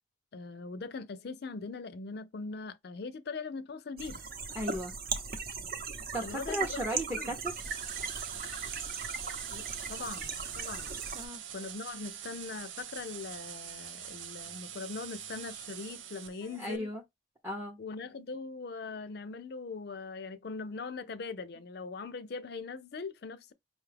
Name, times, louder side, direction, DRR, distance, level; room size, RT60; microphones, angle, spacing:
voice 1, 0.3-4.2 6.2-6.8 7.1-7.3 9.5-10.3 10.6-10.9 11.5-16.9 17.8-23.5, left 4 dB, 55° left, 0.4 m, -41 dB
sound 1, 4.0-11.3, right 5 dB, 50° right, 0.8 m, -38 dB
voice 2, 4.6-4.9 6.1-7.5 11.1-11.4 16.6-17.0 17.4-17.8, equal, 10° right, 0.6 m, -35 dB
sound 2, 7.5-16.8, right 10 dB, 90° right, 0.6 m, -44 dB
5.3 x 2.3 x 3.3 m
head